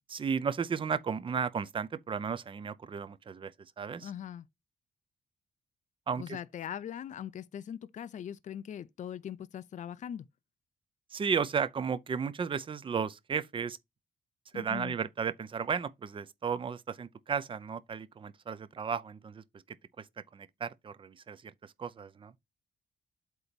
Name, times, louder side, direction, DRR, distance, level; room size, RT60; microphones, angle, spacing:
voice 1, 0.1-4.1 6.1-6.4 11.1-13.8 14.5-19.4 20.0-20.1 20.3-22.3, right 6 dB, 30° right, 0.6 m, -34 dB
voice 2, 4.0-4.5 6.2-10.3 14.5-14.9, left 9 dB, 45° left, 0.5 m, -41 dB
8.1 x 3.0 x 5.2 m
cardioid pair, 135°, 18 cm